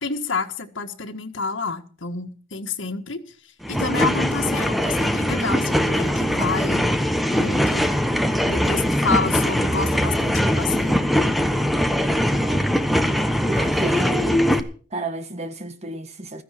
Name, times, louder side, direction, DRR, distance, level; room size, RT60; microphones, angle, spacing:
voice 1, 0.0-3.2 3.7-6.8 7.3-7.9 8.5-11.0, left 4 dB, 90° left, 1.6 m, -28 dB
sound 1, 3.6-14.6, equal, ahead, 1.2 m, -21 dB
voice 2, 12.2-13.0 13.5-14.5 14.9-16.4, right 2 dB, 35° right, 1.7 m, -32 dB
16.0 x 14.0 x 4.5 m
head